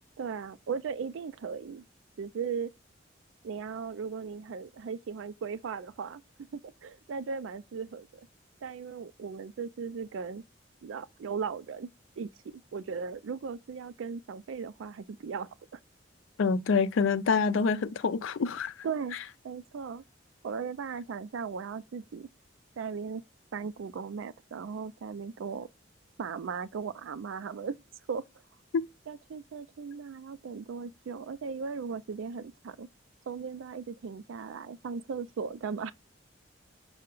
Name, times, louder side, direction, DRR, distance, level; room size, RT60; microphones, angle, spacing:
voice 1, 0.2-1.8 2.2-2.7 3.4-6.2 6.5-8.3 8.6-10.4 10.8-11.9 12.2-12.3 12.7-15.8 18.8-19.2 19.4-20.0 20.4-22.3 22.8-23.2 23.5-25.7 26.2-27.8 28.1-28.2 29.1-32.9 33.3-35.9, right 5 dB, 85° right, 0.4 m, -37 dB
voice 2, 16.4-18.7 28.7-28.8, left 5 dB, 85° left, 0.4 m, -26 dB
5.6 x 2.1 x 3.7 m
head